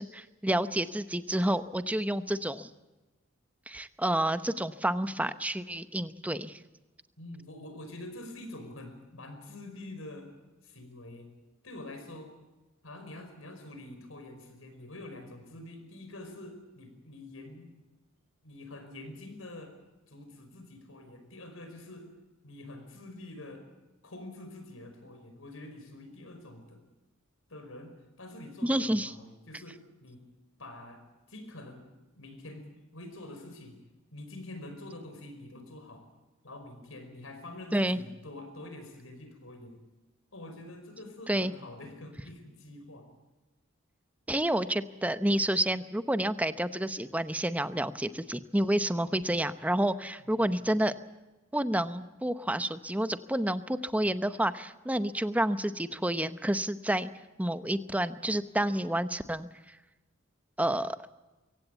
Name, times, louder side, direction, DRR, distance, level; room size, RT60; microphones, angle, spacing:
voice 1, 0.0-2.7 3.7-6.6 28.6-29.1 37.7-38.0 41.3-41.5 44.3-50.9 51.5-57.1 57.4-59.8 60.6-61.0, right 1 dB, 5° right, 12 dB, 0.8 m, -29 dB
voice 2, 7.2-10.3 10.6-11.3 11.6-12.3 12.8-17.7 18.4-19.8 20.1-22.1 22.4-23.7 24.0-26.8 27.5-30.3 30.6-31.8 32.1-33.8 34.1-36.1 36.4-39.8 40.3-43.1 50.2-50.7, left 1 dB, 90° left, 6 dB, 5.2 m, -46 dB
23.5 x 16.5 x 8.3 m, 1.1 s
head